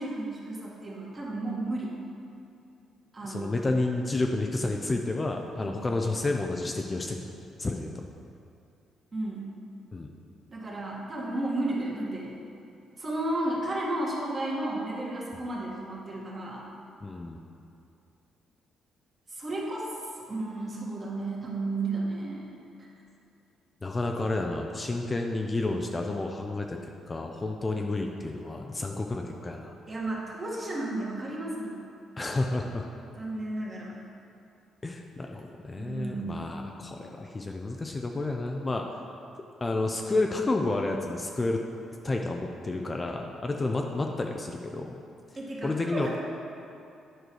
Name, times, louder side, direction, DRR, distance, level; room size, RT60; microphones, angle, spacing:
voice 1, 0.0-2.0 3.1-3.6 5.6-5.8 9.1-9.5 10.5-12.4 13.0-16.7 19.3-20.0 20.3-22.9 29.9-31.9 33.2-34.0 35.8-36.6 45.4-46.2, right 2 dB, 35° right, -4 dB, 1.8 m, -33 dB
voice 2, 3.2-7.3 7.6-8.0 9.9-10.1 17.0-17.4 23.8-26.8 27.1-29.7 32.2-32.9 34.8-38.8 39.6-41.6 42.0-44.9 45.6-46.1, left 2 dB, 25° left, 2 dB, 0.6 m, -30 dB
9.2 x 4.8 x 4.6 m, 2.6 s
cardioid pair, 90°, 0 cm